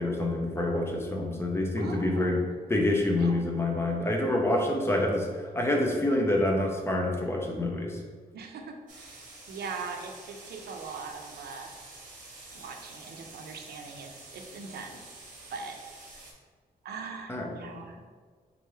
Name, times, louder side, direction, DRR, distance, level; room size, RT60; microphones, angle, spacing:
voice 1, 0.0-2.4 2.7-5.3 5.5-8.0 17.3-17.8, left 1 dB, 15° left, 0 dB, 0.5 m, -27 dB
voice 2, 1.8-2.6 3.2-3.4 8.3-11.7 12.5-15.0 15.5-15.8 16.8-18.1, right 5 dB, 80° right, 4 dB, 0.5 m, -41 dB
sound 1, 8.9-16.3, right 2 dB, 50° right, 0.9 m, -48 dB
3.8 x 3.4 x 3.1 m, 1.5 s
wide cardioid pair, 160°, 16 cm